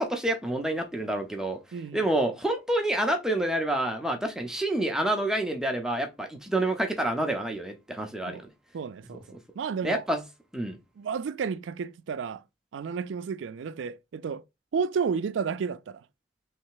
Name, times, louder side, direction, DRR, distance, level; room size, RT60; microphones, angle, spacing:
voice 1, 0.0-1.6 1.9-8.4 9.8-10.2 10.5-10.8, right 1 dB, 5° right, 0.6 m, -28 dB
voice 2, 1.7-2.0 8.3-8.4 8.7-10.0 11.0-12.4 12.7-14.4 14.7-16.0, right 6 dB, 85° right, 0.4 m, -32 dB
3.3 x 3.2 x 4.7 m
head